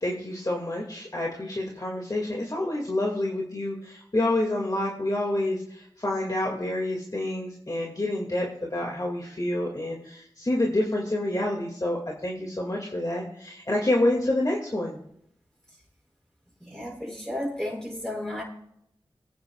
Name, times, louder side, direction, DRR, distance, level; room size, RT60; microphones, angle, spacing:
voice 1, 0.0-15.0, left 1 dB, 40° left, 1.9 m, -28 dB
voice 2, 16.6-18.4, left 1 dB, 5° left, 5.6 m, -33 dB
23.0 x 9.4 x 2.3 m
wide cardioid pair, 45°, 10 cm